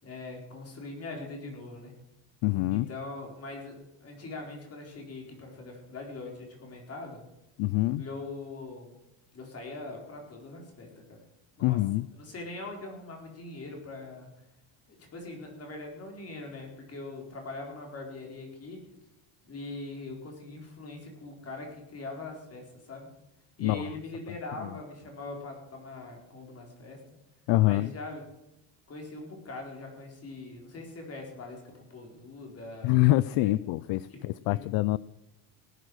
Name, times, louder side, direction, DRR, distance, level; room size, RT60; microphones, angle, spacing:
voice 1, 0.0-1.9 2.7-7.2 8.0-9.0 9.3-11.2 11.6-11.8 12.2-14.3 14.9-18.9 19.4-23.1 23.6-27.0 27.6-28.2 28.9-33.0 33.3-33.5 34.1-34.2 34.5-34.6, left 2 dB, 30° left, 1 dB, 4.5 m, -42 dB
voice 2, 2.4-2.9 7.6-8.0 11.6-12.1 23.6-23.9 24.3-24.7 27.5-27.9 32.8-35.0, left 18 dB, 65° left, 18 dB, 0.5 m, -25 dB
18.0 x 10.0 x 6.4 m, 0.92 s
cardioid pair, 155°, 47 cm